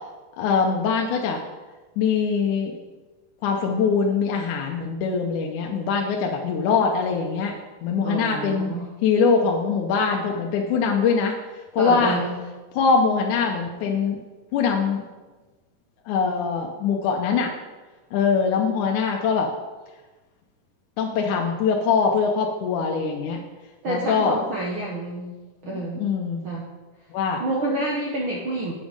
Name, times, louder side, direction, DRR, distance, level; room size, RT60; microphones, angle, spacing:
voice 1, 0.4-1.4 2.0-2.7 3.4-7.6 7.8-8.8 9.0-11.3 11.7-12.2 12.7-14.2 14.5-15.1 16.1-17.5 18.1-19.5 21.0-23.4 23.9-24.4 25.6-26.4 27.1-27.4, left 5 dB, 75° left, 1 dB, 2.1 m, -22 dB
voice 2, 8.0-8.9 11.8-12.4 23.8-25.3 25.6-26.0 26.4-26.7 27.4-28.7, right 2 dB, 80° right, -2 dB, 1.1 m, -28 dB
8.2 x 7.1 x 5.1 m, 1.2 s
omnidirectional pair, 3.8 m